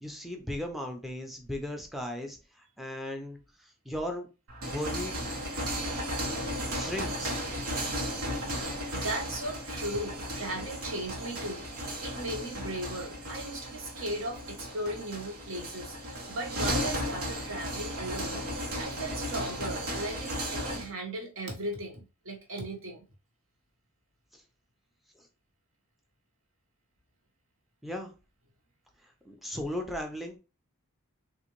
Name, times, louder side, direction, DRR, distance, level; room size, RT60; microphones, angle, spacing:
voice 1, 0.0-4.3 4.6-5.3 6.7-7.4 24.3-24.4 25.2-25.3 27.8-28.1 29.2-30.4, left 1 dB, ahead, 0.5 m, -37 dB
sound 1, 4.5-20.9, equal, 85° right, 1.2 m, -35 dB
voice 2, 8.6-23.0, right 1 dB, 65° right, 1.1 m, -37 dB
3.9 x 2.6 x 3.0 m
head